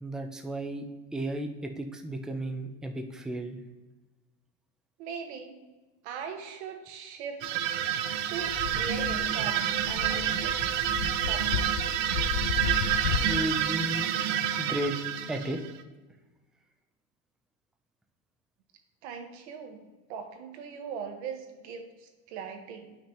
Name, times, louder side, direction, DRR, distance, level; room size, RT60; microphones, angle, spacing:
voice 1, 0.0-0.9 1.1-3.6 10.1-10.2 13.2-14.1 14.6-15.0 15.3-15.6, right 1 dB, ahead, 5 dB, 0.4 m, -33 dB
voice 2, 5.0-5.6 6.0-7.4 8.3-10.6 11.2-11.8 19.0-23.0, right 6 dB, 75° right, 5 dB, 1.4 m, -40 dB
sound 1, 7.4-15.8, right 10 dB, 50° right, 0.6 m, -29 dB
sound 2, 8.4-13.3, left 7 dB, 80° left, 0.6 m, -34 dB
9.7 x 5.9 x 3.0 m, 1.3 s
supercardioid pair, 140°, 34 cm